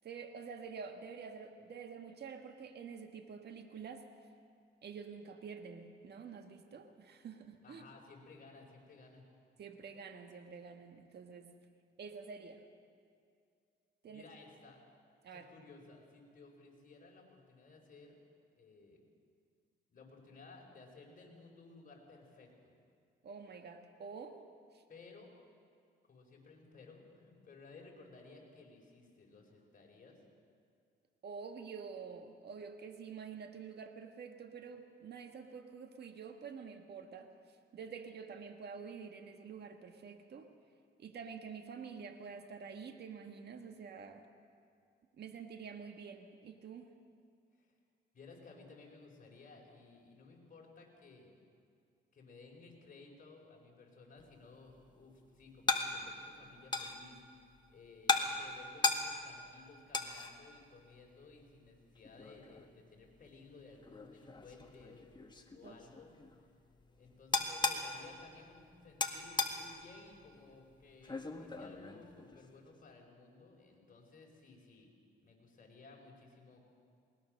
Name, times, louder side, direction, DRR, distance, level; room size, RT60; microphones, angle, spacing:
voice 1, 0.0-4.1 4.8-7.8 9.6-11.5 12.0-12.6 14.0-14.3 15.2-15.5 23.2-24.4 24.7-24.8 31.2-40.5 41.0-44.2 45.2-46.9 65.6-65.7, right 6 dB, 55° right, 6 dB, 1.7 m, -48 dB
voice 2, 7.6-9.3 14.1-14.8 15.3-18.2 18.6-19.0 19.9-22.5 24.9-25.3 26.1-30.2 47.5-47.7 48.1-51.4 52.1-65.1 65.5-66.1 67.0-74.9 75.2-76.7, left 3 dB, 45° left, 0 dB, 5.2 m, -57 dB
sound 1, 54.2-72.7, left 3 dB, 20° left, 1.7 m, -40 dB
20.5 x 20.0 x 6.6 m, 2.3 s
cardioid pair, 90°, 20 cm